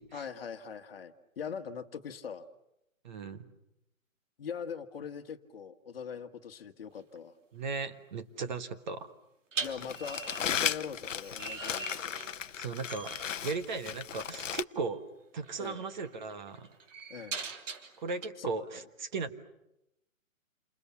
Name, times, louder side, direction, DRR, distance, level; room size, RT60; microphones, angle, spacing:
voice 1, 0.1-2.4 4.4-7.3 9.6-12.2 15.6-15.8 17.1-17.4 18.4-18.8, left 7 dB, 45° left, 8 dB, 1.5 m, -42 dB
voice 2, 3.0-3.5 7.5-9.1 12.6-13.2 13.4-15.0 15.3-16.7 18.0-19.3, right 4 dB, 35° right, 10 dB, 1.5 m, -37 dB
sound 1, 6.9-7.2 9.5-12.6 12.9-13.3 14.8-15.0 15.4-18.3, right 4 dB, 65° right, 3.2 m, -42 dB
Crumpling crinkling, 9.6-14.6, left 8 dB, 65° left, 1.0 m, -36 dB
29.0 x 27.5 x 7.2 m, 0.87 s
hypercardioid pair, 165°, 41 cm